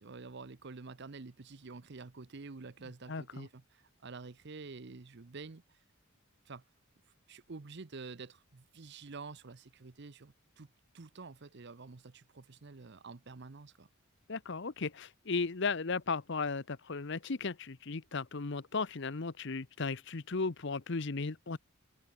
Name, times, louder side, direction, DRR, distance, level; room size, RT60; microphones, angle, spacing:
voice 1, 0.0-5.8 6.5-6.6 7.3-13.9, right 4 dB, 55° right, 0.7 m, -48 dB
voice 2, 3.1-3.5 14.3-21.6, left 4 dB, 55° left, 0.9 m, -36 dB
head